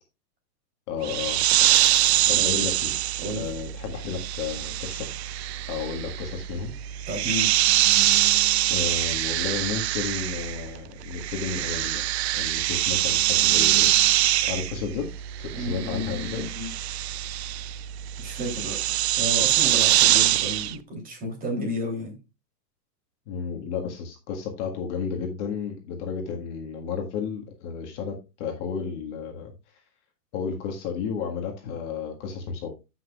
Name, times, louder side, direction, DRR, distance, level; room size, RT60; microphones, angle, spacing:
voice 1, 0.9-1.4 2.3-3.0 3.4-5.1 5.7-6.7 8.7-12.0 12.4-13.9 14.4-15.1 15.4-16.5 23.3-29.5 30.3-32.7, left 6 dB, 45° left, 2 dB, 1.8 m, -32 dB
sound 1, 1.0-10.8 11.0-20.7, right 14 dB, 45° right, 0.5 m, -24 dB
voice 2, 2.3-2.6 3.2-3.5 7.1-7.5 15.5-16.7 18.2-18.8 19.2-22.2, equal, 15° right, 3 dB, 3.3 m, -32 dB
14.0 x 6.0 x 2.4 m, 0.27 s
hypercardioid pair, 150°, 49 cm